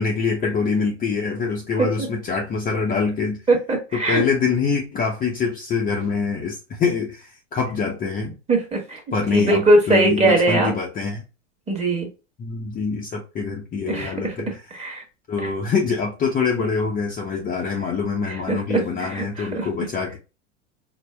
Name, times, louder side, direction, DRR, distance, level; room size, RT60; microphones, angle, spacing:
voice 1, 0.0-3.4 3.9-8.3 9.1-11.2 12.4-14.6 15.3-20.2, left 5 dB, 25° left, 0.6 m, -24 dB
voice 2, 3.5-4.2 8.5-9.0 9.3-10.7 11.7-12.1 13.8-14.3 14.7-15.0 18.3-19.7, right 2 dB, 15° right, 1.3 m, -21 dB
4.4 x 2.1 x 3.3 m
supercardioid pair, 125°, 37 cm